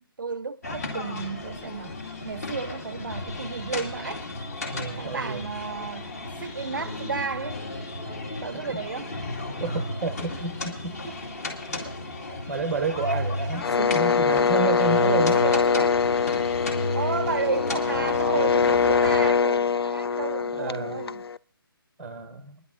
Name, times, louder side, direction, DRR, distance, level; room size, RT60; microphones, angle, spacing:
voice 1, 0.0-4.2 5.0-7.6 8.4-9.1 10.3-10.4 11.0-11.2 12.3-12.4 15.3-16.0 16.9-21.2, right 5 dB, 55° right, 0.4 m, -33 dB
sound 1, 0.6-19.3, left 2 dB, 40° left, 2.3 m, -34 dB
voice 2, 4.7-5.5 9.6-11.0 12.5-15.5 20.5-21.1 22.0-22.6, right 4 dB, ahead, 0.8 m, -30 dB
sound 2, 13.6-21.4, left 6 dB, 85° left, 0.4 m, -23 dB
21.5 x 11.0 x 3.7 m
hypercardioid pair, 170°, 12 cm